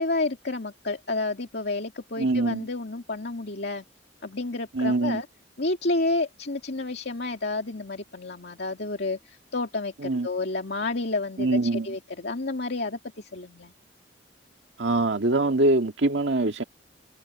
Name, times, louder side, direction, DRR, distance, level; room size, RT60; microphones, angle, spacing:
voice 1, 0.0-3.8 4.2-5.3 5.6-13.7, left 2 dB, 65° left, 2.4 m, -30 dB
voice 2, 2.2-2.6 4.7-5.2 10.0-10.3 11.4-11.9 14.8-16.6, right 2 dB, 80° right, 1.9 m, -23 dB
head